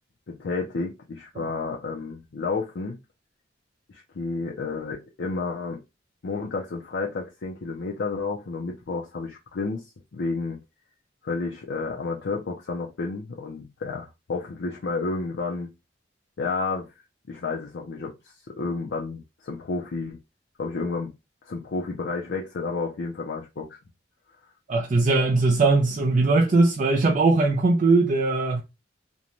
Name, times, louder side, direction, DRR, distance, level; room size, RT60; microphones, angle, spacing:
voice 1, 0.3-3.0 3.9-5.8 6.2-9.8 10.1-10.6 11.2-15.7 16.4-16.9 17.3-20.2 20.6-21.1 21.5-23.8, left 3 dB, 70° left, 0.5 m, -31 dB
voice 2, 24.7-28.6, right 3 dB, 45° right, 0.4 m, -20 dB
2.6 x 2.2 x 3.0 m
head